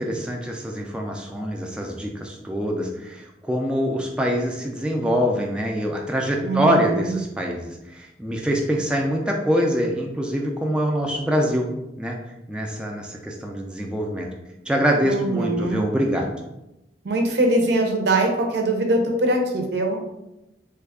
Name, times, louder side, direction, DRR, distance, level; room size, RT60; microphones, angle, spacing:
voice 1, 0.0-11.7 12.0-12.2 12.5-14.3 14.7-16.3, equal, 5° right, 0 dB, 0.3 m, -24 dB
voice 2, 6.4-7.2 15.0-15.9 17.0-20.1, right 2 dB, 65° right, 3 dB, 0.6 m, -22 dB
3.3 x 2.3 x 3.5 m, 0.92 s
head